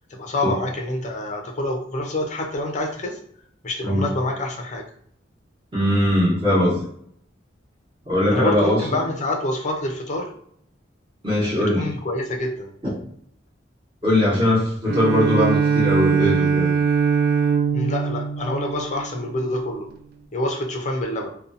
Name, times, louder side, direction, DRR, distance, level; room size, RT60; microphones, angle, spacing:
voice 1, 0.1-3.2 3.6-4.8 8.3-10.3 11.7-12.7 17.7-19.9 20.3-21.3, left 1 dB, 40° left, 1 dB, 0.5 m, -26 dB
voice 2, 5.7-6.8 8.1-9.0 11.2-11.9 12.8-12.9 14.0-16.7, left 1 dB, 25° right, -8 dB, 1.0 m, -20 dB
Bowed string instrument, 14.9-19.5, right 6 dB, 55° right, 0.4 m, -22 dB
2.5 x 2.3 x 2.6 m, 0.66 s
head